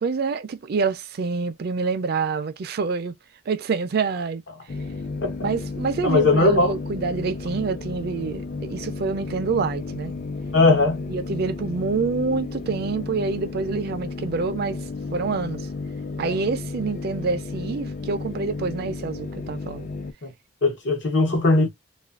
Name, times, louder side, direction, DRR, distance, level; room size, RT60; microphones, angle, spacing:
voice 1, 0.0-3.1 3.5-4.4 5.4-10.1 11.1-14.8 15.1-15.7 16.2-19.9, right 4 dB, 55° right, 0.4 m, -27 dB
sound 1, 4.7-20.1, left 3 dB, 45° left, 0.3 m, -33 dB
voice 2, 6.0-6.7 10.5-11.0 16.2-16.3 20.2-20.3 20.6-21.7, left 2 dB, 70° left, 1.0 m, -19 dB
2.4 x 2.2 x 2.3 m
head